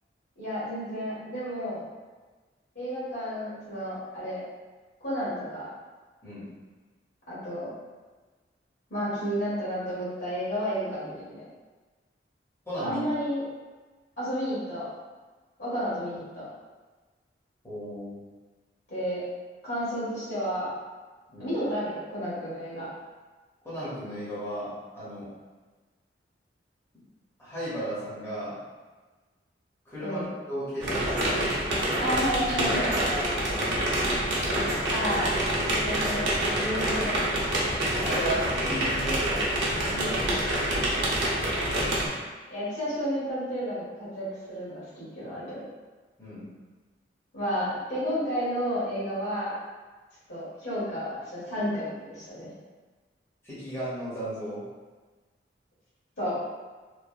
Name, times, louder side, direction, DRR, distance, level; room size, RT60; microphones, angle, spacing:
voice 1, 0.4-1.8 2.7-4.4 5.0-5.7 7.3-7.7 8.9-11.4 12.8-13.4 14.2-14.9 15.6-16.5 18.9-19.2 19.6-20.7 21.4-22.9 30.0-30.3 32.0-33.2 34.9-35.4 35.8-37.2 39.9-40.4 42.5-45.6 47.3-49.6 50.3-52.5 56.2-56.4, equal, 65° left, -11 dB, 1.4 m, -31 dB
voice 2, 12.6-13.0 17.6-18.2 21.3-21.5 23.6-25.3 27.4-28.6 29.9-31.6 33.6-34.2 38.0-39.4 46.2-46.5 53.4-54.6, right 1 dB, 15° left, -12 dB, 1.0 m, -35 dB
sound 1, 30.8-42.1, right 1 dB, 85° right, 0.7 m, -27 dB
3.1 x 2.2 x 2.3 m, 1.3 s
head